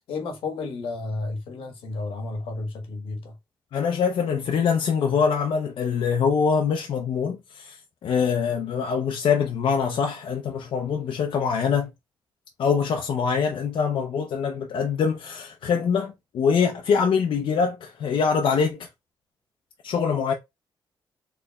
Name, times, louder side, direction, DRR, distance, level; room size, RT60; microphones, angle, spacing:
voice 1, 0.1-3.3, left 3 dB, 90° left, 1.2 m, -32 dB
voice 2, 3.7-11.9 12.6-18.9 19.8-20.3, left 6 dB, 75° left, 0.6 m, -24 dB
4.3 x 3.2 x 2.3 m
cardioid pair, 95°, 9 cm